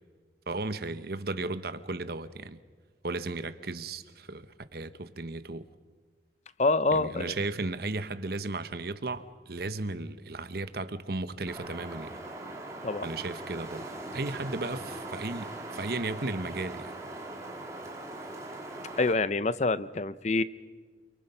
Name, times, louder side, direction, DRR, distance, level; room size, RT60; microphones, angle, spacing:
voice 1, 0.5-2.6 3.0-5.6 6.9-12.2 13.0-13.9 14.1-16.9, right 2 dB, 55° right, 1.0 m, -35 dB
voice 2, 6.6-7.3 12.8-13.1 19.0-20.4, left 3 dB, 40° left, 0.7 m, -26 dB
Wind, 11.5-19.1, right 2 dB, 15° right, 2.5 m, -40 dB
29.0 x 23.0 x 5.6 m
head